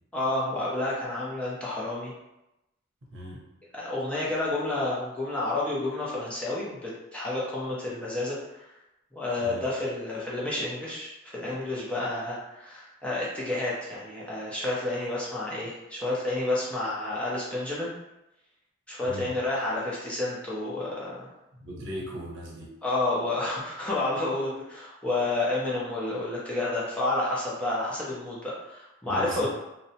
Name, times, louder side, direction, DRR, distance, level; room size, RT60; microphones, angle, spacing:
voice 1, 0.1-2.1 3.7-8.7 9.1-17.9 18.9-21.3 22.8-29.5, left 2 dB, 5° left, -7 dB, 0.5 m, -30 dB
voice 2, 3.1-3.4 9.4-9.7 19.0-19.3 21.5-22.7 29.1-29.5, equal, 60° right, -3 dB, 0.7 m, -37 dB
2.6 x 2.0 x 2.7 m, 0.91 s
head